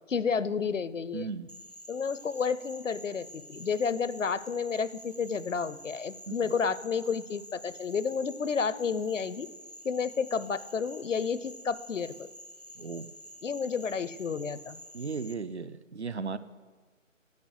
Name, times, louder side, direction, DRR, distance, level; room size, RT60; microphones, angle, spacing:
voice 1, 0.1-1.3 1.9-9.5 9.8-12.3 13.4-14.8, left 6 dB, 70° left, 16 dB, 0.7 m, -31 dB
voice 2, 1.1-1.5 6.3-6.5 12.8-13.1 14.9-16.4, right 4 dB, 55° right, 14 dB, 0.7 m, -36 dB
Frog, 1.5-15.3, equal, 35° left, 0.4 m, -49 dB
10.5 x 8.5 x 8.0 m, 1.3 s
figure-of-eight pair, 155°, 39 cm